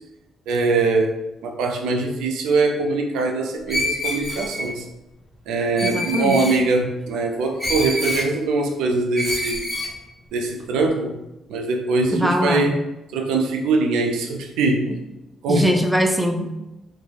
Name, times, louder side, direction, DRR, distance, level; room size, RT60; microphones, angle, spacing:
voice 1, 0.5-1.1 1.4-4.9 5.5-9.6 10.3-11.1 11.5-12.7 13.1-14.9 15.4-15.7, right 3 dB, 90° right, 3 dB, 0.4 m, -22 dB
Screech, 3.7-4.7 5.8-6.6 7.6-8.3 9.2-9.9, left 1 dB, 15° left, 1.0 m, -26 dB
voice 2, 5.8-6.4 12.1-12.7 14.9-15.0 15.5-16.6, equal, 5° right, 3 dB, 0.3 m, -22 dB
2.3 x 2.1 x 3.1 m, 0.96 s
cardioid pair, 90°, 0 cm